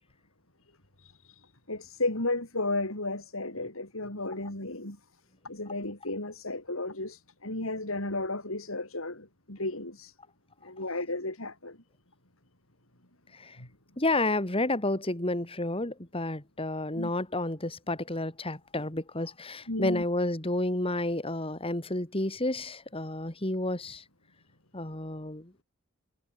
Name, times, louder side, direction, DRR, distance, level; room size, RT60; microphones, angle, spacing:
voice 1, 1.0-5.0 5.4-10.1 10.6-11.8 13.6-13.7 17.0-17.1 19.7-20.0, left 2 dB, 75° left, 6.0 m, -34 dB
voice 2, 14.0-24.0 24.7-25.6, left 2 dB, 25° left, 3.0 m, -31 dB
head